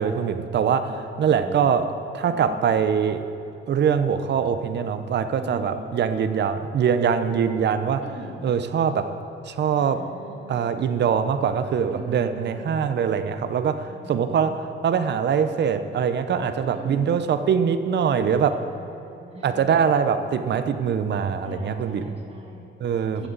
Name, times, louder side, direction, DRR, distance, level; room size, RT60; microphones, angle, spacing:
voice 1, 0.0-0.9 1.2-3.2 3.7-8.1 8.4-9.1 9.5-10.0 10.5-18.6 19.4-22.1 22.8-23.3, right 7 dB, 60° right, 10 dB, 0.9 m, -23 dB
voice 2, 0.9-1.6 2.3-2.7 5.3-5.9 8.0-8.4 9.8-10.6 11.8-12.8 13.9-14.7 16.6-17.1 18.5-19.8 21.4-22.6 23.0-23.3, right 1 dB, 30° right, -2 dB, 3.0 m, -42 dB
16.0 x 13.5 x 4.1 m, 2.6 s
cardioid pair, 90°, 20 cm